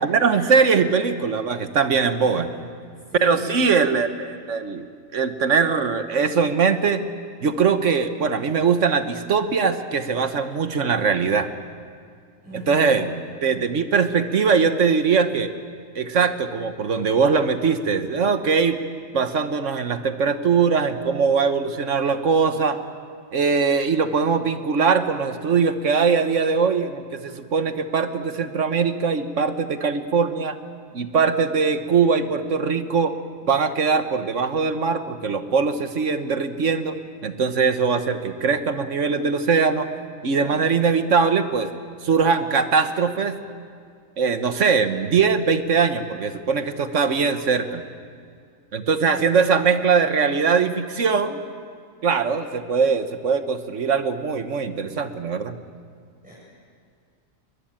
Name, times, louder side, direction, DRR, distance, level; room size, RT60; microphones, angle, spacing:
voice 1, 0.0-2.5 3.2-4.9 5.1-7.0 7.4-11.5 12.5-13.1 13.4-15.5 15.9-18.8 19.1-22.8 23.3-30.6 30.9-33.1 33.5-37.0 37.2-39.9 40.2-41.7 42.0-43.4 44.2-47.8 48.7-51.4 52.0-55.5, right 5 dB, 65° right, 9 dB, 1.5 m, -21 dB
voice 2, 3.1-3.5 12.4-13.0 40.4-40.7 49.0-49.3 56.2-56.3, right 2 dB, 5° right, -8 dB, 7.3 m, -37 dB
22.0 x 21.0 x 8.9 m, 2.2 s
omnidirectional pair, 1.4 m